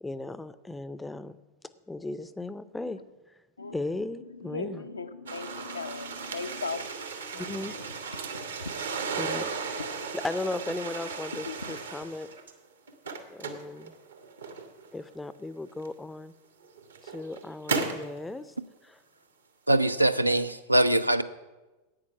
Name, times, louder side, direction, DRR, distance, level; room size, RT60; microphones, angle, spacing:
voice 1, 0.0-1.4 1.9-3.0 3.3-3.4 3.7-4.8 7.3-7.8 9.2-9.5 10.1-12.3 13.3-13.9 14.9-16.3 17.0-18.5 18.8-19.0, left 2 dB, 10° left, 15 dB, 0.5 m, -36 dB
voice 2, 4.3-7.1 7.3-7.6 8.2-10.1 11.4-11.8, left 4 dB, 75° left, 9 dB, 0.6 m, -39 dB
sound 1, 5.3-12.5 12.9-14.9 15.8-15.9 16.6-18.1, right 4 dB, 70° right, 1.0 m, -35 dB
voice 3, 19.7-21.2, right 1 dB, 85° right, 11 dB, 0.4 m, -23 dB
10.5 x 8.6 x 5.8 m, 1.1 s
figure-of-eight pair, 90°, 0 cm